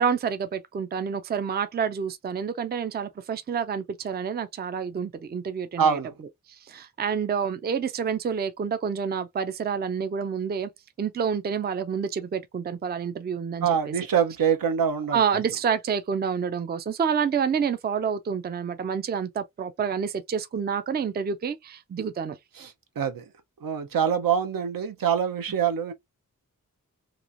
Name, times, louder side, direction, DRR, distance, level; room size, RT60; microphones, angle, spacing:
voice 1, 0.0-6.0 6.7-10.7 11.0-13.9 15.1-22.4, right 7 dB, 30° right, 0.3 m, -28 dB
voice 2, 5.8-6.1 13.6-15.2 22.6-23.3 23.6-25.9, right 8 dB, 80° right, 0.6 m, -25 dB
3.0 x 2.4 x 2.4 m
wide cardioid pair, 110°, 34 cm